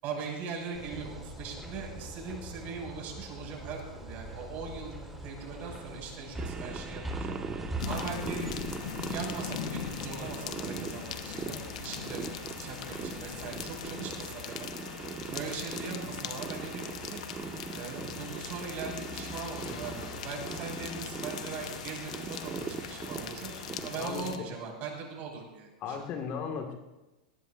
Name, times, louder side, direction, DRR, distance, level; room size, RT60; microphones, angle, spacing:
voice 1, 0.0-4.9 5.2-7.3 7.9-8.5 9.0-14.7 15.3-17.2 17.7-23.5 23.8-26.0, right 5 dB, 45° right, -1 dB, 6.8 m, -40 dB
sound 1, 0.7-13.9, right 1 dB, 5° right, 4.1 m, -43 dB
sound 2, 6.3-24.1, right 5 dB, 20° right, 1.6 m, -41 dB
sound 3, 7.8-24.4, left 10 dB, 70° left, 1.1 m, -41 dB
voice 2, 23.9-24.5 25.8-26.7, left 6 dB, 45° left, 4 dB, 2.1 m, -36 dB
20.5 x 19.5 x 2.7 m, 1.0 s
hypercardioid pair, 95°, 4 cm